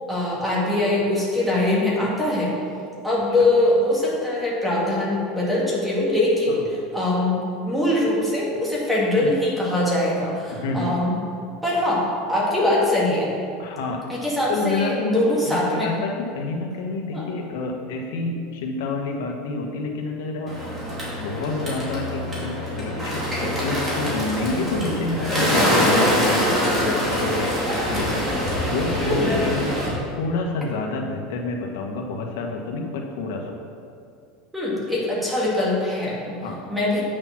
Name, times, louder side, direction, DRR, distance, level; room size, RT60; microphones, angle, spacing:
voice 1, 0.1-2.6 3.0-7.4 7.6-11.1 11.6-13.3 14.1-15.9 17.1-17.2 29.0-29.4 34.5-36.4 36.7-37.0, left 1 dB, 5° right, -6 dB, 2.1 m, -22 dB
voice 2, 10.5-10.9 13.6-14.0 14.5-15.2 15.5-20.8 21.2-26.4 26.8-28.2 28.7-29.7 30.2-33.5 36.4-36.6, left 3 dB, 85° left, 2 dB, 1.3 m, -28 dB
Bird, 20.5-29.9, equal, 20° right, 2.6 m, -24 dB
8.8 x 6.9 x 5.8 m, 2.3 s
supercardioid pair, 165°, 0 cm